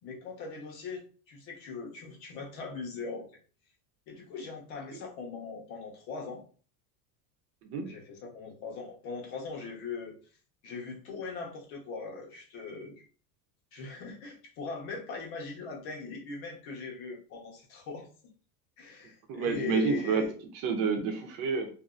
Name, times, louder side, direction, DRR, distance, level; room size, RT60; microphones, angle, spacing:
voice 1, 0.0-3.3 4.1-6.4 7.8-10.2 10.6-13.1 13.7-18.1 18.8-20.3, left 4 dB, 55° left, 1.0 m, -40 dB
voice 2, 19.3-20.2 20.5-21.7, right 5 dB, 60° right, 0.7 m, -29 dB
2.7 x 2.6 x 2.4 m
cardioid pair, 165°, 43 cm